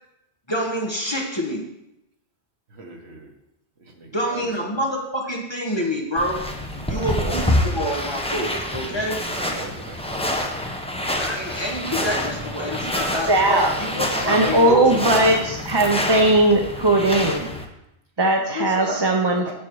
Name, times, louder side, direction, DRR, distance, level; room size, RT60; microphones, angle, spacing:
voice 1, 0.5-1.6 4.1-6.5 6.9-9.2 11.2-14.8 18.5-19.0, equal, 25° left, 0 dB, 1.2 m, -27 dB
voice 2, 2.7-3.3 3.8-4.8 6.7-7.7 8.9-10.1 14.1-15.1 18.9-19.0 19.3-19.5, right 3 dB, 70° right, 2 dB, 1.5 m, -37 dB
sound 1, 6.2-17.6, left 1 dB, 5° left, 0.7 m, -27 dB
voice 3, 13.3-13.7 14.3-17.5 18.2-19.5, right 1 dB, 30° right, 2 dB, 0.6 m, -19 dB
7.4 x 7.2 x 4.7 m, 0.86 s
omnidirectional pair, 1.1 m